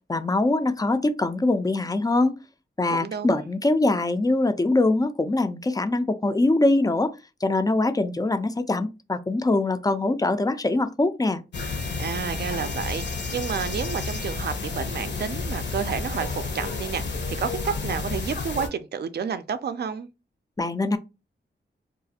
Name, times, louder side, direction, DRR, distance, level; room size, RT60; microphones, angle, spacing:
voice 1, 0.1-2.4 2.8-7.1 7.4-11.4 20.6-21.0, left 2 dB, 20° left, 0.3 m, -23 dB
voice 2, 2.9-3.4 12.0-17.0 17.4-20.1, right 7 dB, 55° right, 0.4 m, -30 dB
sound 1, 11.5-18.7, left 4 dB, 65° left, 0.7 m, -31 dB
2.4 x 2.3 x 2.7 m
wide cardioid pair, 80°, 20 cm